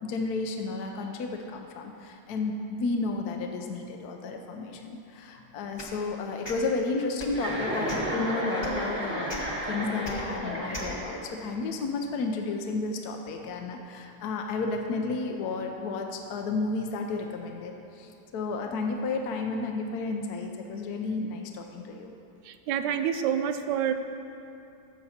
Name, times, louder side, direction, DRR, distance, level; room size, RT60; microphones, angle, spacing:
voice 1, 0.0-9.3 9.6-22.1, left 3 dB, 70° left, 3 dB, 1.1 m, -32 dB
sound 1, 5.8-5.9 6.4-6.6 7.1-7.4 7.8-8.1 8.6-8.7 9.3-9.4 10.0-10.1 10.7-10.9, left 1 dB, 15° left, 1.0 m, -39 dB
Chuckle chortle, 7.3-11.4, equal, 5° right, 1.3 m, -32 dB
voice 2, 22.4-23.9, right 9 dB, 80° right, 9 dB, 1.2 m, -27 dB
12.5 x 7.2 x 4.3 m, 2.7 s
omnidirectional pair, 1.9 m